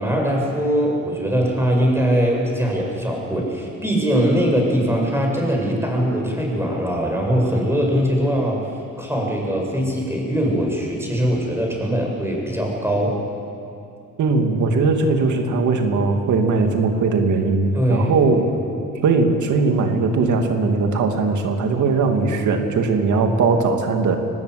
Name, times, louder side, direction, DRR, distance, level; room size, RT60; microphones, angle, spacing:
voice 1, 0.0-13.2 17.7-18.1, equal, 10° right, 0 dB, 7.9 m, -21 dB
voice 2, 14.2-18.5 19.0-24.2, right 4 dB, 75° right, 4 dB, 2.7 m, -19 dB
24.0 x 19.5 x 8.4 m, 2.7 s
cardioid pair, 90°, 30 cm